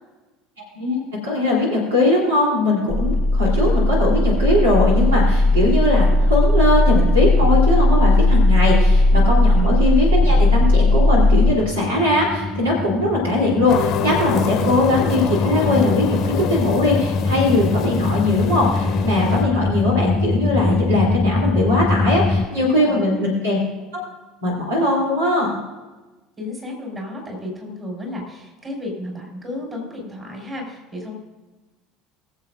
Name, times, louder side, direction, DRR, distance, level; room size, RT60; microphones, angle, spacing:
voice 1, 0.7-23.6 23.9-24.0 24.4-25.6, left 2 dB, 75° right, -3 dB, 3.1 m, -20 dB
sound 1, 2.9-22.5, left 2 dB, 15° left, 0.4 m, -19 dB
sound 2, 13.7-19.4, left 5 dB, 45° left, 0.9 m, -26 dB
voice 2, 22.5-23.3 26.4-31.1, left 1 dB, 25° right, 0 dB, 4.3 m, -32 dB
22.0 x 7.5 x 2.5 m, 1.2 s
figure-of-eight pair, 65°, 0 cm